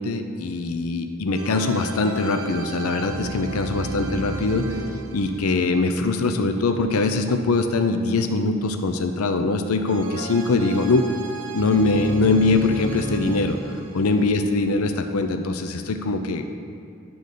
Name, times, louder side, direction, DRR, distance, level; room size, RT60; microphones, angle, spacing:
voice 1, 0.0-4.6 5.1-11.0 11.5-13.6 13.9-16.6, left 3 dB, 90° left, 6 dB, 0.5 m, -22 dB
sound 1, 1.3-7.4 9.9-15.3, right 3 dB, 80° right, 0.8 m, -35 dB
11.0 x 3.9 x 6.6 m, 2.6 s
head